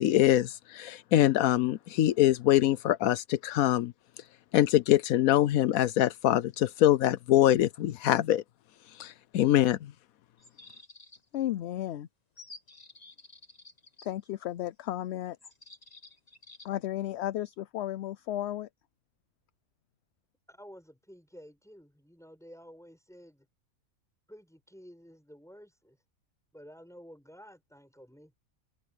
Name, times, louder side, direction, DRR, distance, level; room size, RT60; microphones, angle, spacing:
voice 1, 0.0-3.9 4.5-8.4 9.0-9.8, left 13 dB, 85° left, 1.1 m, -24 dB
sound 1, 10.4-11.4 12.4-14.1 15.4-16.7, left 3 dB, 30° left, 2.0 m, -51 dB
voice 2, 11.3-12.1 14.0-15.4 16.6-18.7, left 13 dB, 65° left, 0.7 m, -33 dB
voice 3, 20.5-23.5 24.3-26.0 26.5-28.3, equal, ahead, 7.2 m, -52 dB
omnidirectional pair, 1.4 m